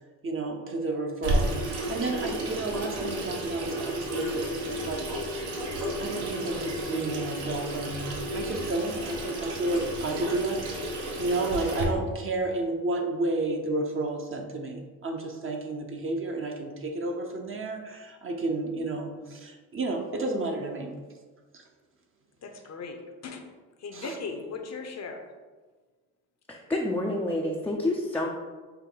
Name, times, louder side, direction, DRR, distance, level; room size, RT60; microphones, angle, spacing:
voice 1, 0.2-5.5 6.0-20.9 21.5-21.6 23.9-24.2, right 2 dB, 35° right, 3 dB, 0.7 m, -31 dB
Water tap faucet / Sink (filling or washing), 1.2-11.8, right 1 dB, 70° right, 1.0 m, -32 dB
voice 2, 22.4-23.4 23.8-25.3, left 4 dB, 40° left, 5 dB, 0.7 m, -38 dB
voice 3, 26.5-28.3, left 1 dB, 5° left, -2 dB, 0.4 m, -28 dB
5.6 x 2.2 x 3.7 m, 1.3 s
supercardioid pair, 70°, 39 cm